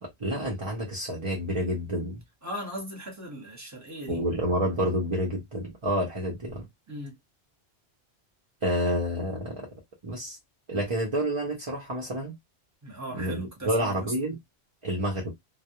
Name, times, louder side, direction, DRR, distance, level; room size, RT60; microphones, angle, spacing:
voice 1, 0.0-2.2 4.1-6.7 8.6-9.7 10.0-10.4 10.7-12.3 13.1-14.4 14.8-15.3, right 1 dB, 35° right, 0.6 m, -29 dB
voice 2, 2.4-4.2 6.9-7.2 12.8-13.9, right 1 dB, 15° right, 0.9 m, -38 dB
2.2 x 2.0 x 2.7 m
omnidirectional pair, 1.1 m